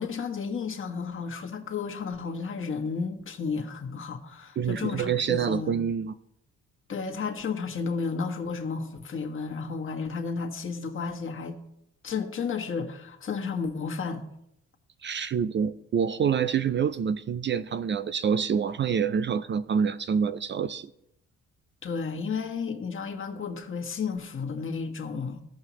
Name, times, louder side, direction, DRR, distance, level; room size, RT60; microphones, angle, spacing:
voice 1, 0.0-5.8 6.9-11.6 12.0-14.3 21.8-25.4, left 5 dB, 45° left, 1.4 m, -32 dB
voice 2, 4.6-6.1 15.0-20.9, right 7 dB, 40° right, 0.4 m, -27 dB
16.0 x 5.5 x 3.0 m
cardioid pair, 90°, 30 cm